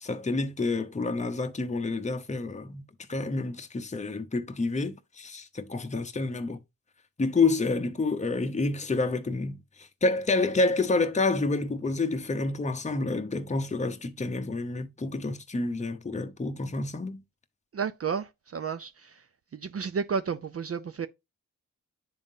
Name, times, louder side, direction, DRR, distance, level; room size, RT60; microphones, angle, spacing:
voice 1, 0.0-2.8 3.1-6.6 7.2-17.2, left 3 dB, 20° left, 0.7 m, -28 dB
voice 2, 17.7-19.3 19.5-21.1, right 6 dB, 45° right, 0.5 m, -32 dB
10.5 x 3.6 x 2.6 m
cardioid pair, 45°, 35 cm